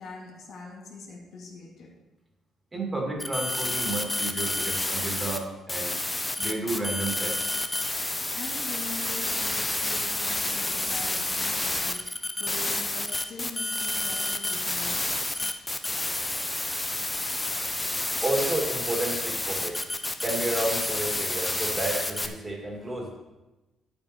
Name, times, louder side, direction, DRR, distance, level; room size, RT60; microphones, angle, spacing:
voice 1, 0.0-1.9 8.3-12.1 12.3-15.5, left 4 dB, 65° left, 0 dB, 2.2 m, -43 dB
voice 2, 2.7-5.9 6.4-7.4 18.2-19.8 20.2-23.1, right 2 dB, 20° right, 0 dB, 2.3 m, -31 dB
sound 1, 3.2-5.4 5.7-22.3, left 2 dB, 15° left, 0.7 m, -29 dB
9.8 x 8.5 x 4.4 m, 1.0 s
cardioid pair, 110°, 0 cm